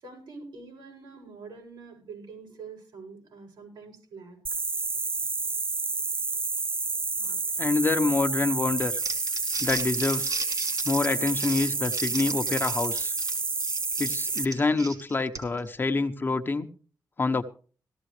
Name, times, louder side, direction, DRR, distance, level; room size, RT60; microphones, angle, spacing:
voice 1, 0.0-4.4, right 4 dB, 80° right, 0 dB, 7.6 m, -45 dB
sound 1, 4.5-14.5, right 4 dB, 30° right, 0.6 m, -29 dB
voice 2, 7.2-9.0 9.6-10.4 10.8-13.1 14.0-16.7 17.2-17.4, left 3 dB, 30° left, 7 dB, 1.0 m, -27 dB
Crumpling crinkling, 8.8-15.7, right 3 dB, 55° right, 4.5 m, -37 dB
17.0 x 14.5 x 3.3 m, 0.41 s
wide cardioid pair, 140°, 8 cm